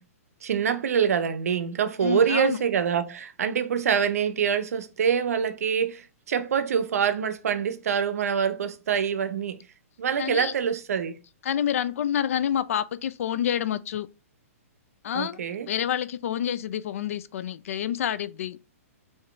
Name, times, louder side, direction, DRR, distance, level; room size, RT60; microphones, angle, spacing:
voice 1, 0.4-9.6 10.0-11.2 15.1-15.7, right 7 dB, 75° right, 0.6 m, -25 dB
voice 2, 2.0-2.6 10.2-10.5 11.4-14.1 15.0-15.4 15.7-18.6, left 10 dB, 65° left, 0.4 m, -28 dB
3.7 x 2.7 x 3.2 m
hypercardioid pair, 140°, 8 cm